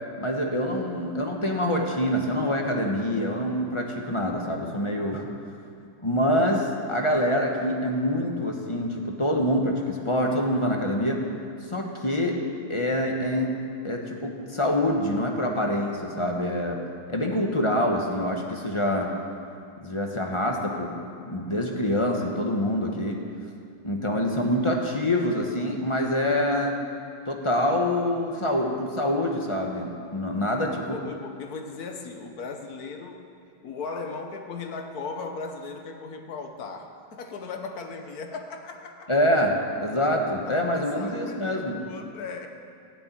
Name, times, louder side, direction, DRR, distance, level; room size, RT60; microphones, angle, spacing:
voice 1, 0.2-5.2 6.0-11.2 11.7-12.4 12.7-13.6 13.8-16.8 17.1-19.1 19.8-20.9 21.2-23.2 23.8-26.8 27.3-30.8 39.1-41.8, left 1 dB, 20° left, 1 dB, 1.1 m, -25 dB
voice 2, 30.6-33.3 33.6-39.1 40.5-42.5, left 4 dB, 55° left, 5 dB, 1.5 m, -37 dB
16.0 x 6.9 x 9.4 m, 2.4 s
omnidirectional pair, 2.2 m